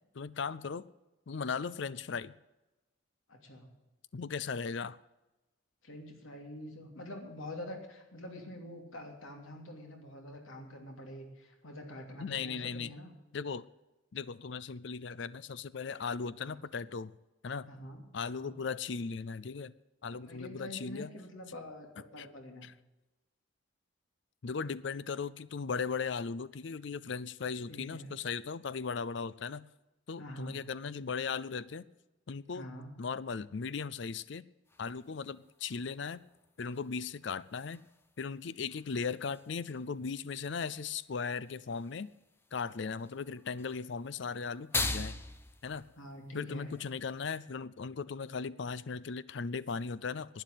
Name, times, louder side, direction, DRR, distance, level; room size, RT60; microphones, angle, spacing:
voice 1, 0.1-0.9 1.3-2.3 4.1-5.0 12.2-12.9 13.3-13.7 14.1-17.1 17.4-17.7 18.1-19.7 20.0-21.1 22.2-22.3 22.6-22.7 24.4-29.6 30.1-31.9 32.3-32.7 33.0-34.5 34.8-36.2 36.6-37.8 38.2-42.1 42.5-45.1 45.6-45.8 46.3-50.4, left 5 dB, 60° left, 17 dB, 0.5 m, -37 dB
voice 2, 3.3-3.7 5.8-13.1 16.5-16.6 17.6-18.0 18.3-18.5 20.1-22.7 27.7-28.1 30.2-30.6 32.5-32.9 46.0-46.7, left 1 dB, 80° left, 3 dB, 2.9 m, -46 dB
sound 1, 34.7-47.4, left 3 dB, 10° left, 0.7 m, -44 dB
11.5 x 9.5 x 9.0 m, 1.0 s
head